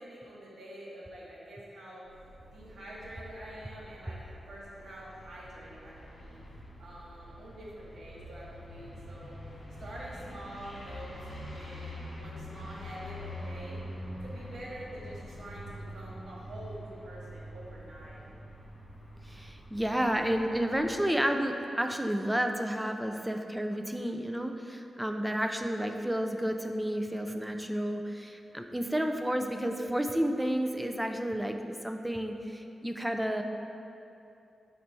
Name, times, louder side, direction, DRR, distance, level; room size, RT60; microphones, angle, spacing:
voice 1, 0.0-2.0 2.5-6.4 6.8-9.3 9.8-13.8 14.2-18.2 19.2-19.4, right 1 dB, 70° right, -6 dB, 1.3 m, -46 dB
sound 1, 2.1-21.0, equal, 45° left, 1.2 m, -45 dB
voice 2, 19.3-33.4, equal, 5° right, 4 dB, 0.3 m, -31 dB
4.3 x 4.3 x 5.3 m, 2.7 s
wide cardioid pair, 140°, 0 cm